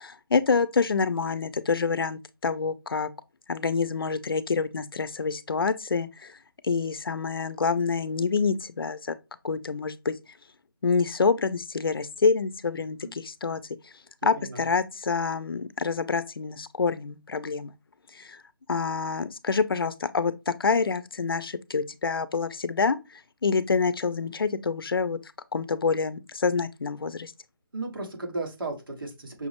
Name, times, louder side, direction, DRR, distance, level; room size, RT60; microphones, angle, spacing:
voice 1, 0.0-3.1 3.5-6.3 6.6-9.1 9.4-10.1 10.8-13.6 14.2-17.7 18.2-18.4 18.7-23.0 23.4-25.2 25.5-27.3, left 4 dB, 85° left, 0.5 m, -27 dB
voice 2, 14.2-14.6 27.7-29.5, right 2 dB, 75° right, 1.6 m, -35 dB
5.8 x 2.1 x 2.9 m
hypercardioid pair, 175°, 12 cm